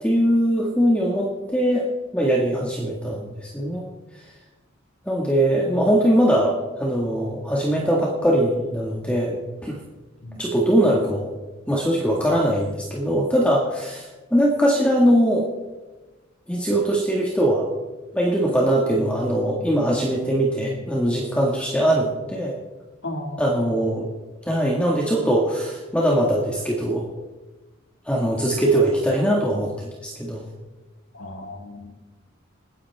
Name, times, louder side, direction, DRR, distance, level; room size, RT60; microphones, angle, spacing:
voice 1, 0.0-3.9 5.1-9.4 9.6-9.8 10.4-11.3 11.7-15.5 16.5-17.7 18.1-22.6 23.4-24.1 24.5-27.1 28.1-30.4, right 1 dB, 5° left, -3 dB, 1.9 m, -21 dB
voice 2, 23.0-23.7 31.1-32.0, left 1 dB, 80° left, 2 dB, 2.3 m, -35 dB
29.0 x 10.5 x 3.6 m, 1.2 s
head